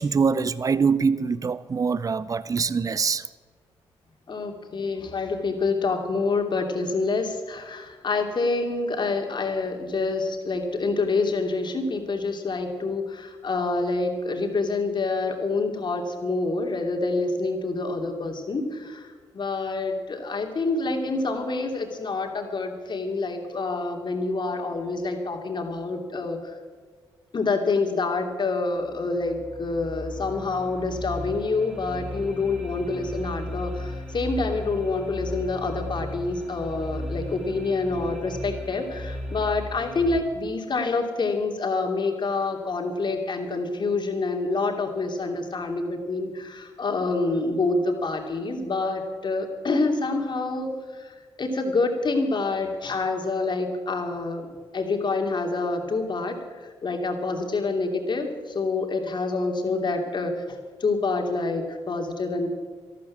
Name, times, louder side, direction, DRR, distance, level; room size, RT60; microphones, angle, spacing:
voice 1, 0.0-3.2, right 5 dB, 35° right, 0.6 m, -24 dB
voice 2, 4.3-26.5 27.3-54.5 54.7-56.3 56.6-62.5, left 3 dB, 50° left, 2.8 m, -27 dB
sound 1, 28.8-40.2, left 1 dB, 5° right, 4.3 m, -36 dB
13.0 x 12.5 x 7.3 m
supercardioid pair, 60°, 10 cm